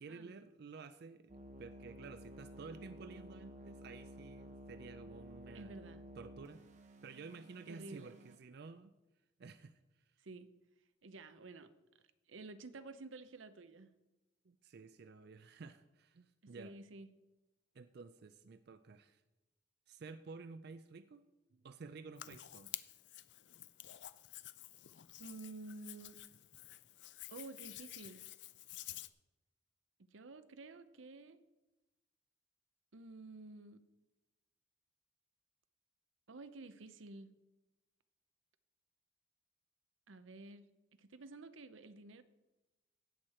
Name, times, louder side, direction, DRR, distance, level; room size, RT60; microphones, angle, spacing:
voice 1, 0.0-1.3 1.6-5.8 6.1-6.6 7.0-8.9 9.4-10.1 14.4-16.7 17.7-19.2 19.9-21.2 21.5-22.8, right 4 dB, 55° right, 11 dB, 0.4 m, -52 dB
sound 1, 1.3-8.4, right 1 dB, 40° right, 0.9 m, -54 dB
voice 2, 5.5-6.0 7.7-8.1 10.2-10.5 11.0-11.7 12.3-13.9 16.4-17.1 25.2-26.2 27.3-28.2 30.1-31.4 32.9-33.8 36.3-37.3 40.1-40.7 41.0-42.2, right 3 dB, 85° right, 11 dB, 0.7 m, -51 dB
Hands, 22.2-29.1, left 14 dB, 60° left, 0.4 m, -51 dB
16.5 x 6.5 x 4.3 m, 1.0 s
head